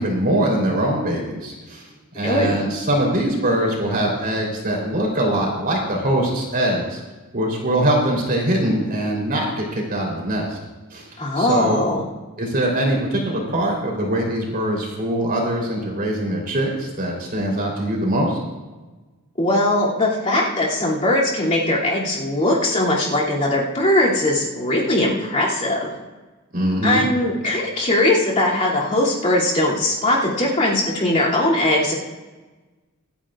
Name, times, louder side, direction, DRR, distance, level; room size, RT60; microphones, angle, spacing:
voice 1, 0.0-1.9 2.1-7.0 7.3-10.6 10.9-11.1 11.3-11.8 12.4-18.4 26.5-27.0, right 1 dB, 45° right, -1 dB, 3.9 m, -22 dB
voice 2, 2.2-2.6 11.2-12.0 19.4-25.9 26.8-31.9, left 1 dB, 30° left, -6 dB, 2.9 m, -20 dB
26.0 x 10.0 x 2.5 m, 1.2 s
head